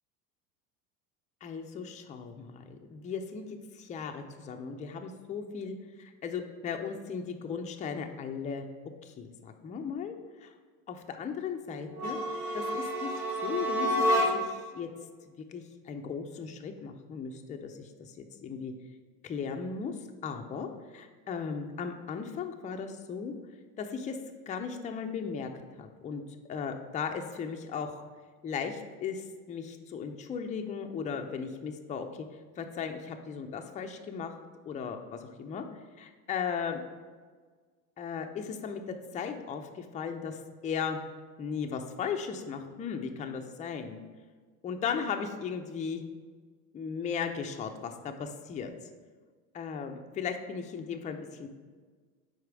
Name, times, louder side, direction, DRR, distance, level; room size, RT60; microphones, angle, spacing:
voice 1, 1.4-8.7 9.0-10.5 10.9-12.2 12.5-14.9 15.3-18.7 19.2-19.9 20.2-23.3 23.8-24.2 24.5-25.5 25.8-26.2 26.5-28.1 28.4-32.3 32.6-34.4 34.7-35.6 36.0-36.8 38.0-41.0 41.4-44.0 44.6-46.0 46.7-48.7 49.5-51.5, left 6 dB, 20° left, 5 dB, 0.4 m, -37 dB
sound 1, 11.9-14.7, equal, 70° right, 1.2 m, -29 dB
4.8 x 4.2 x 4.7 m, 1.5 s
hypercardioid pair, 90°, 42 cm